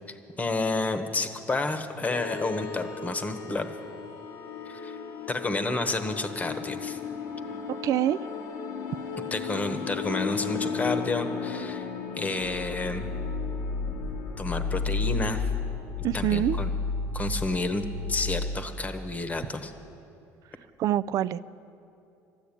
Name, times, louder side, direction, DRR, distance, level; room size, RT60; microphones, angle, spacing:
voice 1, 0.1-3.7 4.7-5.0 5.3-7.0 9.3-11.9 12.1-13.1 14.4-15.5 16.1-16.7 17.1-19.7, left 3 dB, 25° left, 8 dB, 1.1 m, -30 dB
sound 1, 2.0-18.6, left 4 dB, 80° left, 1.2 m, -33 dB
voice 2, 7.7-8.2 16.0-16.6 20.8-21.4, right 12 dB, 60° right, 16 dB, 0.4 m, -25 dB
12.5 x 10.5 x 8.6 m, 2.7 s
cardioid pair, 100°, 7 cm